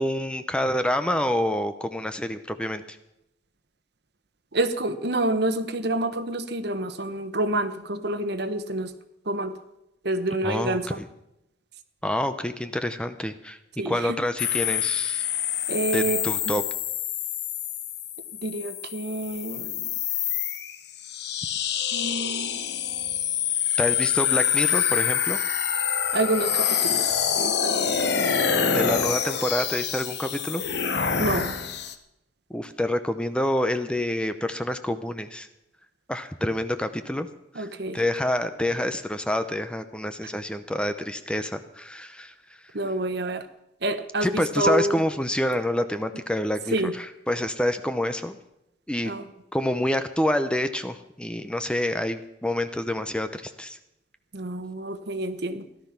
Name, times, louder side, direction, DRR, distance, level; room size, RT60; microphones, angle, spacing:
voice 1, 0.0-3.0 10.4-11.1 12.0-13.6 13.9-15.3 15.9-16.6 23.8-25.4 28.7-30.6 32.5-35.5 36.1-37.3 37.5-42.3 44.2-48.4 48.9-49.1 49.5-53.8, left 1 dB, 5° left, 9 dB, 0.7 m, -27 dB
voice 2, 4.5-8.9 9.3-9.6 10.0-11.0 13.8-14.2 15.7-16.2 18.4-19.9 21.9-22.6 26.1-27.1 27.4-29.0 31.2-31.5 37.5-38.0 42.7-43.5 43.8-45.0 46.7-46.9 49.0-49.3 54.3-55.6, right 1 dB, 60° right, 10 dB, 1.2 m, -28 dB
sound 1, 14.4-31.9, left 8 dB, 60° left, 1.1 m, -26 dB
17.0 x 12.0 x 5.9 m, 0.87 s
head